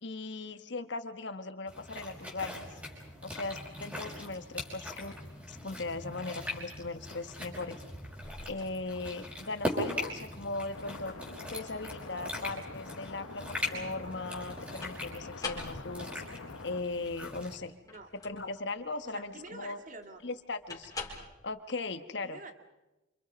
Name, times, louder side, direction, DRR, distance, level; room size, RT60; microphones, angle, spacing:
voice 1, 0.0-2.7 3.2-5.1 5.5-7.8 8.5-11.1 11.5-17.7 18.1-19.8 20.2-20.9 21.4-22.4, left 3 dB, 60° left, 9 dB, 1.4 m, -38 dB
sound 1, 1.7-17.6, left 1 dB, 5° right, 5.5 m, -41 dB
sound 2, 7.3-21.2, left 3 dB, 20° left, 5.1 m, -48 dB
sound 3, 10.7-16.8, left 3 dB, 85° left, 1.1 m, -46 dB
voice 2, 19.0-20.2 22.2-22.5, right 3 dB, 40° right, 6 dB, 2.2 m, -47 dB
28.0 x 27.5 x 5.3 m, 1.0 s
head